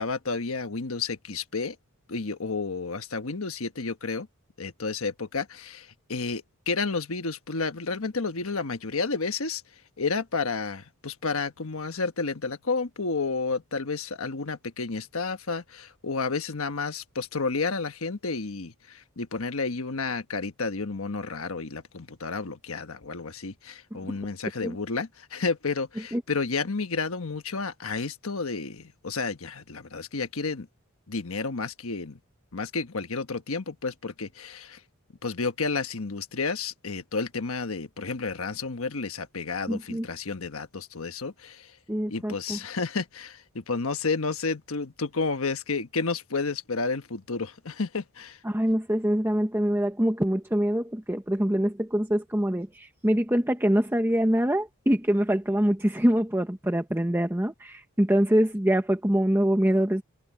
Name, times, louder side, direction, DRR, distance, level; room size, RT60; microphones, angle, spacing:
voice 1, 0.0-1.7 2.1-4.3 4.6-9.6 10.0-30.7 31.1-32.2 32.5-34.8 35.2-41.7 42.1-48.4, left 4 dB, 75° left, 1.3 m, -31 dB
voice 2, 39.7-40.1 41.9-42.6 48.4-60.0, equal, 10° right, 1.0 m, -24 dB
head